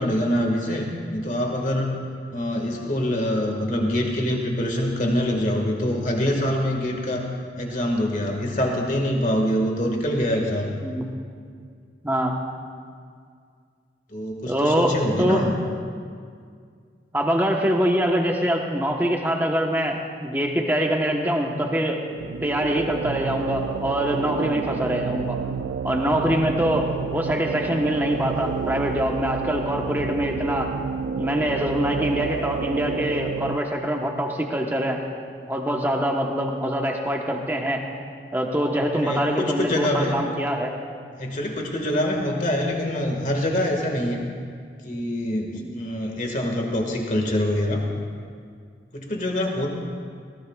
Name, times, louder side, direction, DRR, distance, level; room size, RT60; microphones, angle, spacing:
voice 1, 0.0-1.9 2.3-7.2 7.6-10.7 14.1-15.5 38.9-40.1 41.2-44.2 44.8-47.8 48.9-49.7, left 1 dB, 45° left, 1 dB, 1.8 m, -25 dB
voice 2, 10.8-11.1 12.0-12.3 14.5-15.4 17.1-22.0 22.4-25.4 25.8-30.7 31.1-35.0 35.5-37.8 38.3-40.7 45.6-45.8, equal, 10° right, 1 dB, 1.1 m, -24 dB
sound 1, 22.1-33.6, right 6 dB, 85° right, 0.3 m, -30 dB
20.5 x 17.5 x 2.4 m, 2.1 s
head